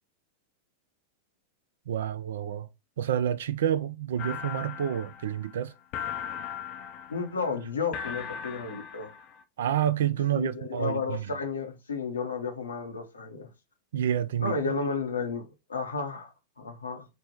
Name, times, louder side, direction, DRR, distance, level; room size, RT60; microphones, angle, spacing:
voice 1, 1.9-2.7 3.0-5.7 9.6-11.3 13.9-14.6, right 10 dB, 60° right, 0.3 m, -28 dB
sound 1, 4.2-9.4, left 8 dB, 40° left, 0.4 m, -38 dB
voice 2, 7.1-9.1 10.3-13.5 14.4-16.3 16.6-17.0, left 4 dB, 75° left, 0.7 m, -32 dB
3.2 x 2.1 x 2.9 m
figure-of-eight pair, 90°, 0 cm